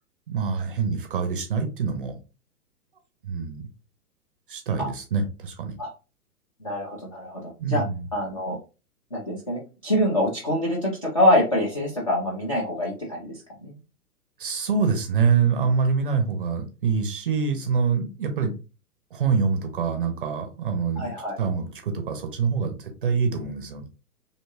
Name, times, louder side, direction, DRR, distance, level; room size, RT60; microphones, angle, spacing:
voice 1, 0.3-2.2 3.2-3.7 4.5-5.7 7.6-8.1 14.4-18.5 19.1-21.1 21.4-23.8, right 5 dB, 35° right, 6 dB, 0.5 m, -25 dB
voice 2, 6.6-7.8 8.1-8.6 9.1-13.7 21.0-21.4, left 1 dB, 25° left, -5 dB, 0.3 m, -25 dB
2.7 x 2.2 x 2.7 m, 0.32 s
figure-of-eight pair, 110°, 46 cm